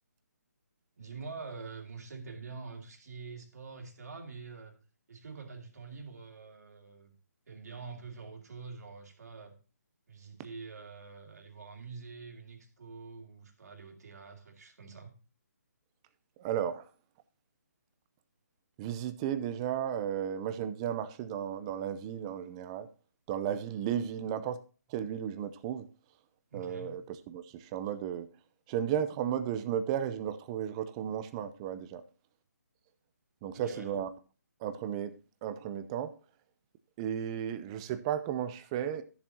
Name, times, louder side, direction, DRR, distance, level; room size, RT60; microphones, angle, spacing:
voice 1, 1.0-4.8 5.1-7.1 7.5-9.5 10.1-15.1 26.5-26.9 33.5-34.0, right 4 dB, 65° right, 2.6 m, -46 dB
voice 2, 16.4-16.9 18.8-22.9 23.3-24.6 24.9-25.9 26.5-28.3 28.7-32.0 33.4-34.1 34.6-35.1 35.4-36.2 37.0-39.0, right 9 dB, 20° right, 0.5 m, -34 dB
13.0 x 7.1 x 2.8 m
hypercardioid pair, 160°, 10 cm